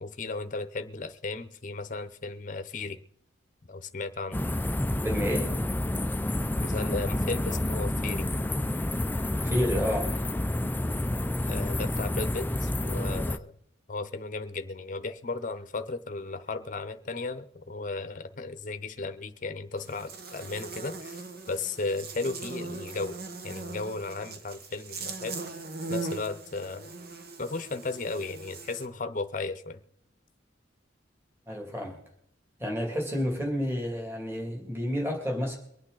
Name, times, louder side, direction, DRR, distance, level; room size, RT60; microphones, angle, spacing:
voice 1, 0.0-3.0 3.7-4.4 6.6-8.3 11.5-13.5 13.9-23.2 23.4-25.4 25.9-26.9 27.4-29.8, left 3 dB, 40° left, 9 dB, 0.8 m, -35 dB
sound 1, 4.3-13.4, left 1 dB, 10° left, 0.4 m, -29 dB
voice 2, 5.0-5.5 9.4-10.1 31.5-32.0 32.6-35.6, equal, 10° right, 1 dB, 2.5 m, -30 dB
Buzz, 19.8-28.8, right 3 dB, 50° right, 1.2 m, -40 dB
23.5 x 8.8 x 4.0 m, 0.71 s
head